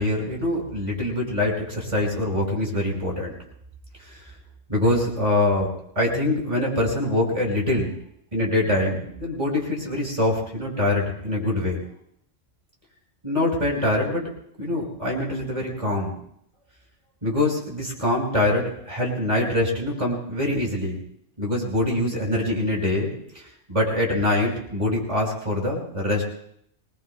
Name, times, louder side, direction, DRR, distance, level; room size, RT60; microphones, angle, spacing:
voice 1, 0.0-3.3 4.1-4.2 4.7-7.9 8.3-11.8 13.2-14.2 14.6-16.2 17.2-21.0 21.4-26.3, left 1 dB, 25° right, -2 dB, 5.2 m, -24 dB
25.5 x 20.5 x 2.2 m, 0.69 s
omnidirectional pair, 1.3 m